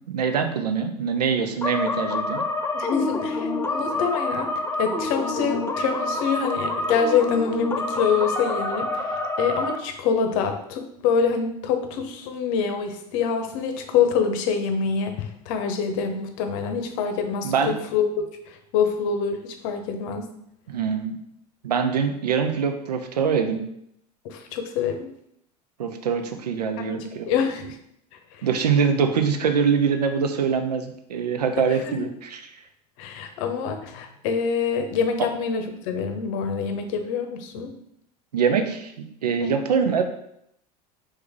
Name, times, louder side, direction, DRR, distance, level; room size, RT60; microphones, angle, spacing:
voice 1, 0.1-2.4 17.4-17.7 20.7-21.2 21.6-23.6 25.8-27.3 28.4-32.5 38.3-40.0, right 6 dB, 75° right, 6 dB, 0.6 m, -24 dB
sound 1, 1.6-9.8, left 2 dB, 10° left, 0.5 m, -27 dB
voice 2, 2.7-4.5 4.8-20.3 24.2-25.1 26.8-27.8 28.3-28.5 31.6-32.0 33.0-37.7 39.4-39.6, left 6 dB, 55° left, 6 dB, 0.8 m, -26 dB
4.5 x 3.2 x 3.5 m, 0.74 s
figure-of-eight pair, 75°, 21 cm